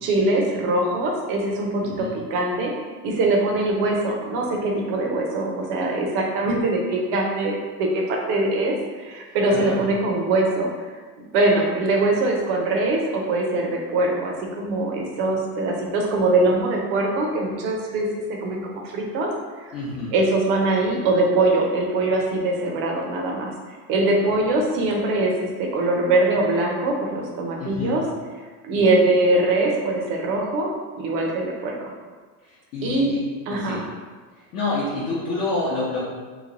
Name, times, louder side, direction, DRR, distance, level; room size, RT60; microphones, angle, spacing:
voice 1, 0.0-2.7 3.0-10.7 11.2-18.1 18.4-19.3 19.7-19.8 20.1-25.3 25.6-28.0 28.6-30.7 31.0-31.8 32.8-33.1 33.5-33.8, right 2 dB, 55° right, -1 dB, 0.8 m, -22 dB
voice 2, 19.7-20.1 27.6-28.0 32.5-33.2 33.5-33.8 34.5-36.0, left 2 dB, 35° left, -8 dB, 0.7 m, -28 dB
3.1 x 2.2 x 3.8 m, 1.4 s
supercardioid pair, 140°, 46 cm